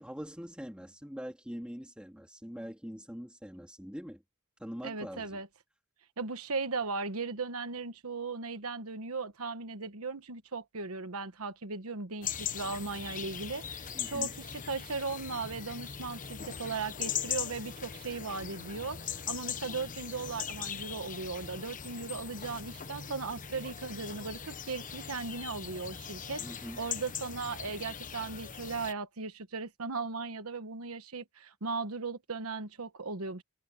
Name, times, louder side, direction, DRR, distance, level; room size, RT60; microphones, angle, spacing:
voice 1, 0.0-4.2 4.6-5.4 13.9-14.3 26.4-26.8, equal, 5° right, 2.8 m, -43 dB
voice 2, 4.8-5.5 6.2-33.4, right 4 dB, 80° right, 1.2 m, -37 dB
sound 1, 12.2-28.9, left 8 dB, 40° left, 1.2 m, -40 dB
head